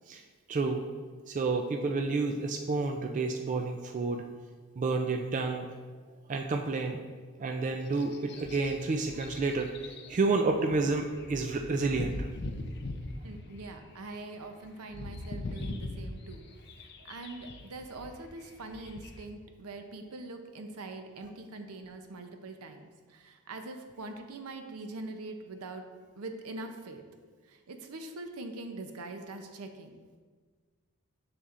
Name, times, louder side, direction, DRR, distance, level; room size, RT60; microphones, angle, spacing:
voice 1, 0.5-0.8 1.3-4.2 4.8-5.7 6.3-7.0 7.4-12.3, right 3 dB, 35° right, 4 dB, 0.3 m, -30 dB
sound 1, 7.5-19.2, left 2 dB, 50° left, 0.5 m, -42 dB
voice 2, 13.2-16.4 16.8-25.8 26.2-27.0 27.4-30.0, right 2 dB, 80° right, 6 dB, 0.6 m, -43 dB
7.0 x 6.7 x 2.5 m, 1.5 s
head